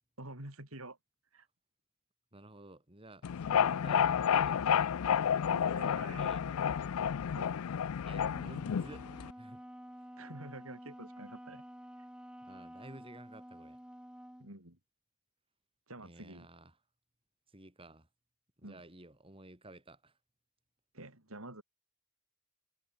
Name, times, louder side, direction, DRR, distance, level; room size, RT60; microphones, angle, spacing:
voice 1, 0.2-1.0 1.3-1.5 5.5-6.3 7.4-7.6 10.2-11.6 14.4-14.8 15.9-16.5 18.6-18.8 20.9-21.6, right 2 dB, 75° right, 6.4 m, -48 dB
voice 2, 2.3-4.9 5.6-6.6 8.1-9.6 10.0-10.1 12.4-13.8 16.0-16.8 17.5-18.1 18.6-20.2, right 1 dB, 25° right, 3.8 m, -53 dB
sound 1, 3.2-9.3, left 8 dB, 85° left, 0.4 m, -31 dB
Wind instrument woodwind instrument, 8.2-14.5, equal, 5° right, 2.1 m, -50 dB
head